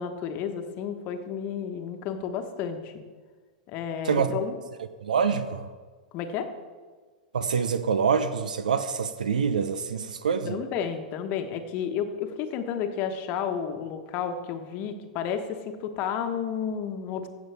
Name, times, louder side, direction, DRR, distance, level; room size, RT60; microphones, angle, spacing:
voice 1, 0.0-2.9 3.7-4.5 6.1-6.5 10.4-17.3, left 7 dB, 40° left, 7 dB, 1.2 m, -31 dB
voice 2, 5.0-5.7 7.3-10.6, right 6 dB, 75° right, 12 dB, 0.6 m, -26 dB
15.5 x 7.2 x 3.5 m, 1.5 s
hypercardioid pair, 105°, 4 cm